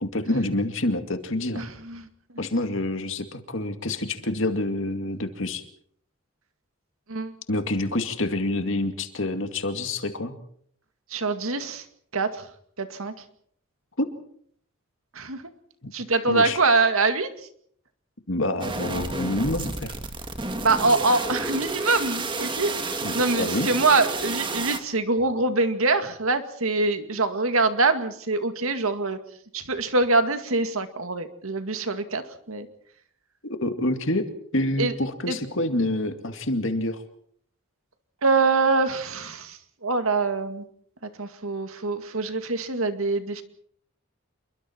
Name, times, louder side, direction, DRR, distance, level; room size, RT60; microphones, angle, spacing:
voice 1, 0.0-1.6 2.4-5.6 7.5-10.3 14.0-14.1 15.8-15.9 16.3-16.6 18.3-19.9 23.0-23.7 33.4-34.3 34.5-37.0, left 1 dB, 65° left, 7 dB, 2.3 m, -27 dB
voice 2, 1.5-2.1 7.1-7.4 11.1-11.9 12.1-12.5 12.8-13.1 15.1-15.4 15.9-17.3 20.6-29.2 29.5-32.7 34.8-34.9 35.3-35.4 38.2-40.6 41.0-43.4, right 3 dB, 80° right, 8 dB, 2.2 m, -24 dB
sound 1, 18.6-24.8, right 3 dB, 20° right, 1.8 m, -31 dB
28.0 x 22.5 x 4.6 m, 0.64 s
head